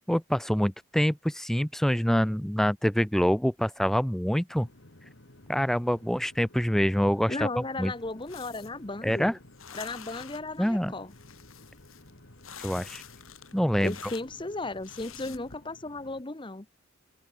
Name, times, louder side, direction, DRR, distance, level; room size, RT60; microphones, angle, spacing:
voice 1, 0.1-4.7 5.5-7.5 7.8-7.9 9.0-9.4 10.6-10.9 12.6-13.0 13.5-13.9, equal, ahead, 0.5 m, -25 dB
sound 1, 4.5-16.2, left 1 dB, 60° left, 2.6 m, -55 dB
voice 2, 7.3-9.3 9.7-11.1 13.8-16.7, left 2 dB, 25° left, 0.9 m, -35 dB
sound 2, 7.8-15.6, left 8 dB, 85° left, 4.3 m, -49 dB
head